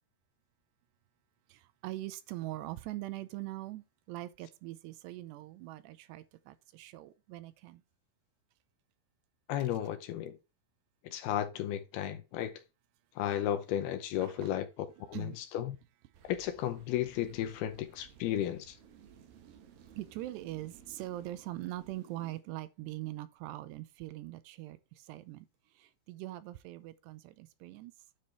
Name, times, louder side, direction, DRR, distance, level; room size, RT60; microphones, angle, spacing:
voice 1, 1.5-7.8 14.2-14.6 15.1-15.4 20.0-25.5 25.7-27.9, right 16 dB, 80° right, 2.7 m, -42 dB
voice 2, 9.5-10.3 11.0-12.5 13.2-14.7 15.1-15.8 16.2-18.8, left 11 dB, 75° left, 2.5 m, -34 dB
sound 1, 16.1-22.4, right 8 dB, 65° right, 3.0 m, -58 dB
9.7 x 5.0 x 4.2 m
omnidirectional pair, 5.0 m